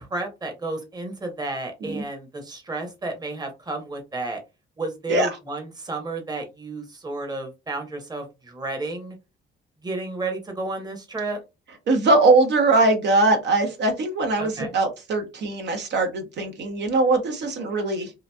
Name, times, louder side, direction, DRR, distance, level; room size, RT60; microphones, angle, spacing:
voice 1, 0.0-4.4 4.8-9.2 9.8-11.4 14.4-14.7, right 2 dB, 20° right, 3 dB, 0.9 m, -32 dB
voice 2, 11.9-18.1, right 2 dB, 60° right, 4 dB, 0.8 m, -21 dB
2.9 x 2.5 x 2.2 m, 0.26 s
cardioid pair, 90°, 20 cm